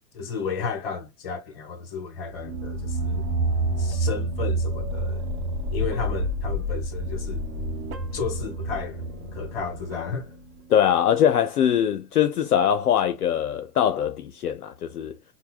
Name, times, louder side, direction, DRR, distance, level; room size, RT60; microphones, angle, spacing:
voice 1, 0.1-3.2 3.8-5.2 5.7-7.4 8.1-9.0 9.3-10.3, left 5 dB, 35° left, 1.2 m, -33 dB
sound 1, 2.3-10.9, right 1 dB, 30° right, 1.0 m, -29 dB
voice 2, 10.7-15.2, left 9 dB, 65° left, 0.6 m, -22 dB
5.3 x 2.2 x 2.3 m
figure-of-eight pair, 115°, 49 cm